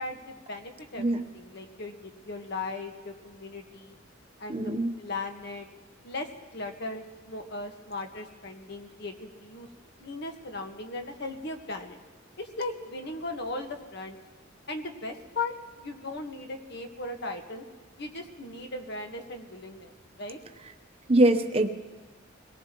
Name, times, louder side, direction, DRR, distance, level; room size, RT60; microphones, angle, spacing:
voice 1, 0.0-3.9 4.4-5.7 6.0-9.7 10.0-12.0 12.4-14.2 14.7-17.6 18.0-20.4, left 2 dB, 55° left, 4 dB, 1.5 m, -38 dB
voice 2, 4.5-4.9 21.1-21.7, right 1 dB, 30° right, 5 dB, 0.9 m, -23 dB
25.0 x 18.0 x 3.1 m, 1.4 s
head